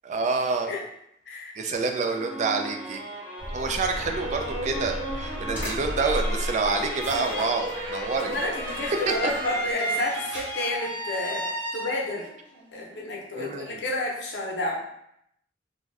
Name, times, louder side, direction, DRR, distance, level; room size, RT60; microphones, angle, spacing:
voice 1, 0.0-0.7 1.6-3.0 3.5-8.3 9.1-9.2 13.4-13.8, right 4 dB, 40° right, 5 dB, 0.3 m, -27 dB
sound 1, 2.1-13.1, right 1 dB, 10° left, 0.8 m, -34 dB
sound 2, 3.4-9.7, equal, 10° right, 1.0 m, -35 dB
sound 3, 3.8-11.6, right 1 dB, 75° right, 0.9 m, -43 dB
voice 2, 8.2-11.4 11.7-12.3 12.7-14.7, left 2 dB, 80° left, -2 dB, 0.7 m, -30 dB
2.5 x 2.3 x 3.2 m, 0.75 s
head